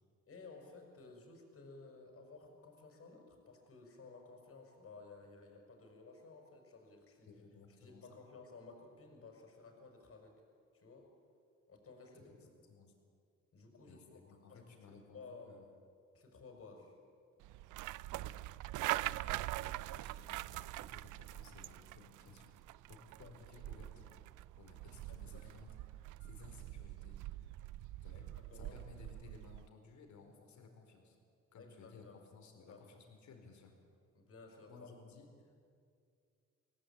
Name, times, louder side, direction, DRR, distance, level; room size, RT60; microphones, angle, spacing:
voice 1, 0.3-7.3 7.8-10.3 10.7-11.1 11.7-12.3 13.5-14.2 14.5-15.5 16.1-17.0 23.2-23.3 24.6-24.7 25.1-25.5 28.1-28.8 31.6-32.2 32.7-32.8 34.1-34.9, left 4 dB, 50° left, 3 dB, 5.9 m, -56 dB
voice 2, 7.2-8.1 12.2-12.9 13.9-15.7 18.2-18.4 19.0-22.5 22.9-24.2 24.6-27.6 28.0-31.2 31.5-33.7 34.7-35.7, left 4 dB, 70° left, 3 dB, 4.6 m, -59 dB
sound 1, 17.4-29.7, right 16 dB, 85° right, 0.5 m, -44 dB
24.5 x 17.5 x 9.0 m, 2.4 s
cardioid pair, 90°, 30 cm